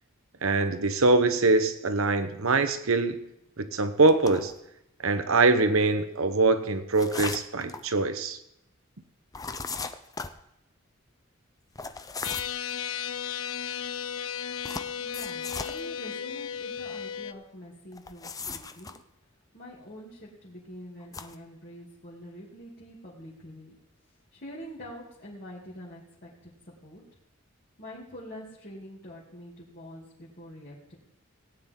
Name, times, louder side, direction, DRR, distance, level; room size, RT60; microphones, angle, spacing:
voice 1, 0.4-3.2 3.6-4.5 5.0-8.4, right 3 dB, 80° right, 10 dB, 1.0 m, -23 dB
sound 1, 4.1-4.6 6.9-7.9 9.3-10.4 11.8-12.6 14.6-15.8 17.9-19.0 21.0-21.3, left 4 dB, 15° left, 0.6 m, -37 dB
sound 2, 12.2-17.3, left 8 dB, 75° left, 0.6 m, -34 dB
voice 2, 15.0-18.9 19.5-23.7 24.3-27.0 27.8-31.0, equal, 45° left, -7 dB, 2.6 m, -45 dB
17.5 x 9.6 x 3.8 m, 0.81 s
head